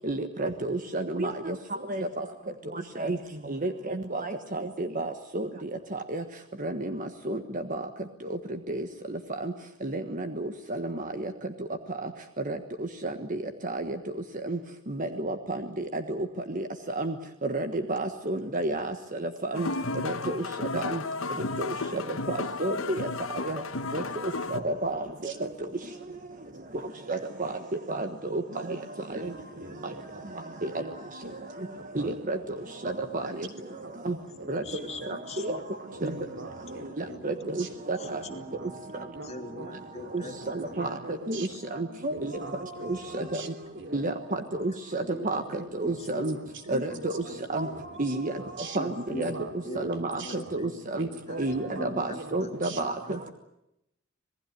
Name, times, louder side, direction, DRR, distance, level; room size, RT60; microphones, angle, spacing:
voice 1, 0.0-1.5 1.9-2.2 3.0-3.2 3.5-5.5 5.9-6.2 6.6-7.4 7.7-7.8 8.7-8.8 9.4-9.5 9.8-10.9 12.5-12.6 13.0-13.4 13.6-14.0 14.5-14.6 14.9-15.3 15.9-16.2 16.5-16.6 17.0-17.1 17.4-18.9 19.2-19.7 20.0-20.4 20.7-21.0 21.9-22.0 22.3-23.1 23.5-23.6 23.9-24.0 24.5-25.3 27.1-27.5 27.9-28.4 28.7-28.8 29.1-29.3 30.6-30.7 31.9-32.4 32.8-33.2 34.0-34.1 34.5-34.6 35.1-35.2 35.4-35.6 36.0-36.1 37.0-38.2 40.5-40.9 41.3-42.3 42.8-43.0 43.3-43.4 43.9-45.4 45.8-46.3 46.7-47.1 47.5-47.7 48.0-48.3 48.7-49.3 49.7-50.2 50.5-51.1 51.4-52.9, right 2 dB, 40° right, 7 dB, 1.4 m, -30 dB
sound 1, 19.5-24.6, left 3 dB, 75° left, 1.2 m, -33 dB
voice 2, 25.1-25.8 26.0-26.1 29.1-30.4 30.8-31.0 31.2-32.6 33.8-35.1 35.5-38.8 39.1-41.6 42.1-43.5 43.7-44.0 44.3-44.7 45.1-50.6 51.0-52.9, right 2 dB, 60° right, 7 dB, 3.3 m, -44 dB
voice 3, 34.4-35.4 36.1-36.2 36.7-37.5 38.0-41.0 43.1-43.3 43.8-43.9 45.0-45.2 45.8-47.0 47.3-47.7 48.0-48.2 48.7-51.4 51.8-53.3, left 1 dB, 30° left, 4 dB, 2.7 m, -42 dB
27.5 x 19.0 x 9.2 m, 0.84 s
head